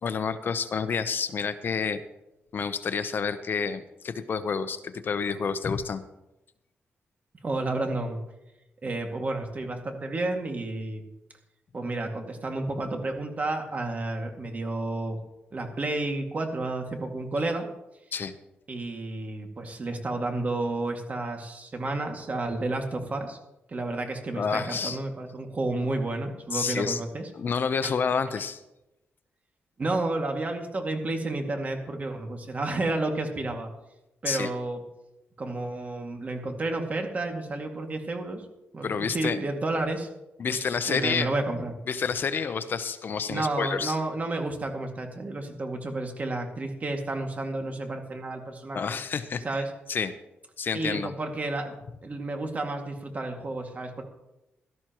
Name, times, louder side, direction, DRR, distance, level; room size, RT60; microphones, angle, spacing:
voice 1, 0.0-2.0 2.5-6.0 18.1-18.3 24.4-25.0 26.5-27.0 27.4-28.6 34.3-34.5 38.8-39.4 40.4-41.3 41.9-44.0 48.7-49.4 49.9-50.1 50.6-51.1, left 6 dB, 55° left, 11 dB, 0.8 m, -29 dB
voice 2, 7.4-8.2 8.8-11.0 11.7-15.2 15.5-17.7 18.7-23.4 23.7-27.3 27.8-27.9 29.8-33.7 34.2-34.8 35.4-38.5 38.7-40.1 40.5-41.7 43.3-49.0 49.4-49.7 50.7-51.7 52.0-54.0, right 2 dB, 40° right, 3 dB, 2.2 m, -31 dB
17.0 x 13.0 x 3.0 m, 0.93 s
cardioid pair, 90°, 4 cm